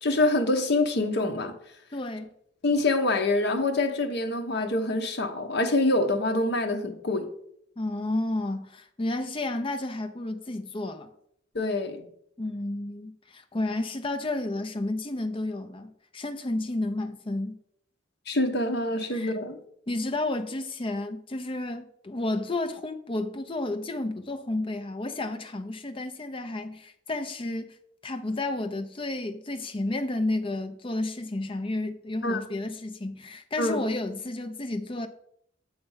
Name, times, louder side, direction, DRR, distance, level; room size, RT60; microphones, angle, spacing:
voice 1, 0.0-1.6 2.6-7.3 11.5-12.1 18.3-19.6 32.2-32.4 33.6-33.8, left 2 dB, 60° left, 0.9 m, -25 dB
voice 2, 1.9-2.3 7.8-11.1 12.4-17.6 19.1-19.4 19.9-27.7 28.0-35.1, left 2 dB, 25° left, 0.6 m, -31 dB
7.9 x 3.4 x 5.6 m
head